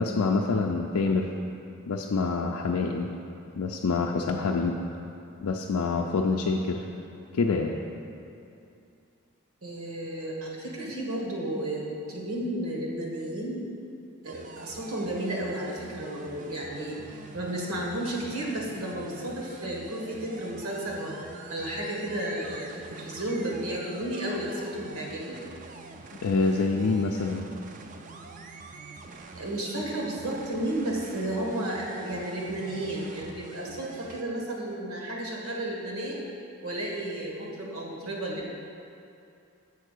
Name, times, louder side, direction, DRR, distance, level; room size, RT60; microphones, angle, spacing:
voice 1, 0.0-1.3 1.9-3.1 3.6-4.8 5.4-6.9 7.3-7.7 26.2-27.5, left 4 dB, 85° left, 0 dB, 0.4 m, -26 dB
voice 2, 9.6-13.7 14.2-17.0 17.3-21.2 21.5-25.4 29.3-36.2 36.6-38.5, right 1 dB, 80° right, -3 dB, 1.5 m, -33 dB
sound 1, 14.3-34.2, right 3 dB, 35° right, 0.4 m, -45 dB
6.9 x 4.5 x 6.6 m, 2.6 s
head